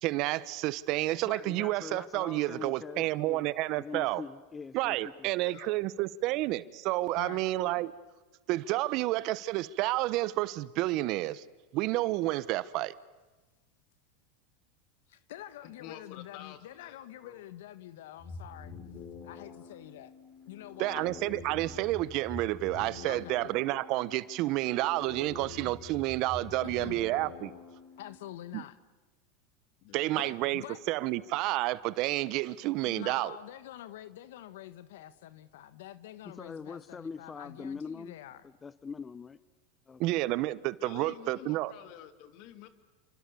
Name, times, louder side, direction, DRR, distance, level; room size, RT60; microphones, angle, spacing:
voice 1, 0.0-4.2 4.7-7.9 8.5-11.4 11.7-12.9 20.8-27.5 28.5-28.6 29.9-33.4 40.0-41.7, right 17 dB, 55° right, 1.0 m, -30 dB
voice 2, 1.2-5.3 36.2-38.1 38.4-39.4 39.9-40.0, left 5 dB, 20° left, 0.8 m, -43 dB
voice 3, 5.4-5.8 15.6-17.4 29.8-30.3 40.8-42.7, left 11 dB, 60° left, 2.7 m, -49 dB
voice 4, 15.1-18.7 19.2-20.1 20.5-21.1 23.1-23.4 26.6-27.0 28.0-28.8 30.2-30.8 32.8-38.4, left 13 dB, 75° left, 1.4 m, -46 dB
sound 1, 18.2-28.2, left 4 dB, 35° left, 5.8 m, -46 dB
29.5 x 26.0 x 7.1 m
supercardioid pair, 110°, 0 cm